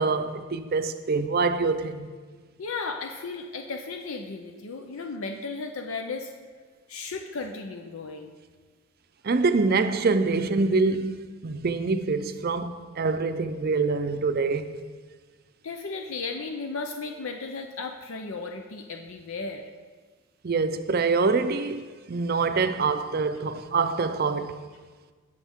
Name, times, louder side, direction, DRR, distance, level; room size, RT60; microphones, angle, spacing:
voice 1, 0.0-2.1 9.2-11.2 11.4-14.8 20.4-21.8 22.1-24.6, right 4 dB, 45° right, 0.5 m, -25 dB
voice 2, 2.6-6.3 6.9-8.3 15.6-19.6, left 4 dB, 70° left, 0.6 m, -35 dB
17.0 x 6.5 x 3.6 m
head